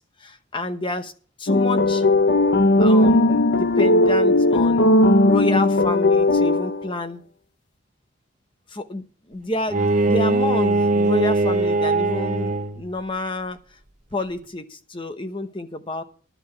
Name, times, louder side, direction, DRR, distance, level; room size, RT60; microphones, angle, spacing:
voice 1, 0.2-1.1 1.4-2.0 2.8-5.0 5.2-7.2 8.7-13.6 14.1-16.0, left 2 dB, 25° left, 0.9 m, -29 dB
sound 1, 1.5-6.9, left 1 dB, 55° left, 0.7 m, -17 dB
Bowed string instrument, 9.7-12.9, right 2 dB, 35° right, 1.2 m, -21 dB
11.5 x 5.8 x 8.8 m
head